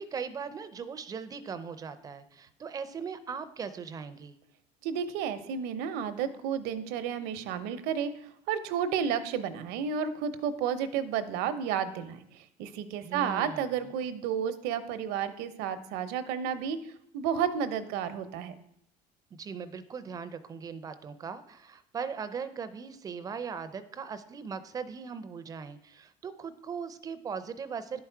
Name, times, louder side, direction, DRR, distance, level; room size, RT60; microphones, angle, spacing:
voice 1, 0.0-4.4 13.0-13.9 19.3-28.0, right 6 dB, 20° right, 12 dB, 0.4 m, -39 dB
voice 2, 4.8-16.8 17.1-18.5, right 8 dB, 80° right, 11 dB, 0.7 m, -32 dB
10.5 x 4.7 x 4.5 m, 0.76 s
cardioid pair, 170°, 17 cm